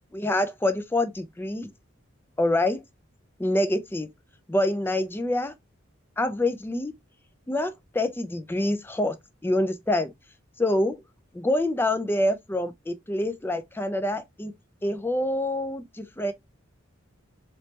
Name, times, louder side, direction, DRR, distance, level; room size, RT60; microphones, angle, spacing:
voice 1, 0.1-1.7 2.4-2.8 3.4-4.1 4.5-5.5 6.2-6.9 7.5-9.2 9.4-10.1 10.6-11.0 11.3-14.5 14.8-16.3, left 1 dB, 10° left, 0.4 m, -26 dB
3.2 x 3.1 x 2.8 m
head